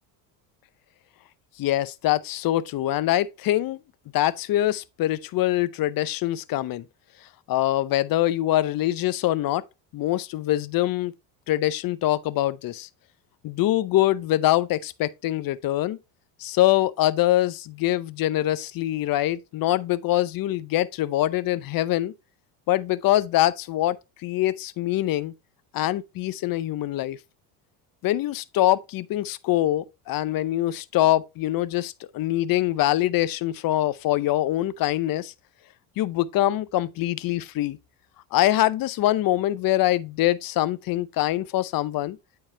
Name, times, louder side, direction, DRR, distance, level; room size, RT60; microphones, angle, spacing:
voice 1, 1.6-3.8 4.1-6.9 7.5-9.6 9.9-11.1 11.5-12.9 13.4-16.0 16.4-22.1 22.7-24.0 24.2-25.3 25.7-27.2 28.0-35.3 36.0-37.8 38.3-42.2, left 14 dB, 45° left, 0.7 m, -24 dB
8.8 x 4.7 x 3.2 m
supercardioid pair, 90°, 48 cm